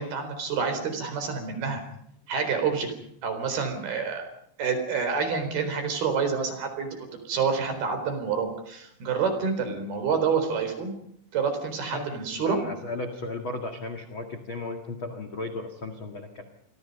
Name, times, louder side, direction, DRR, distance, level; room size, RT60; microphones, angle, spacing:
voice 1, 0.0-1.8 2.3-2.9 3.2-4.3 4.6-6.9 7.3-10.9 11.3-12.6, right 5 dB, 50° right, 8 dB, 5.8 m, -28 dB
voice 2, 12.4-16.4, left 2 dB, 70° left, 5 dB, 1.2 m, -35 dB
29.5 x 23.0 x 5.4 m, 0.69 s
omnidirectional pair, 5.7 m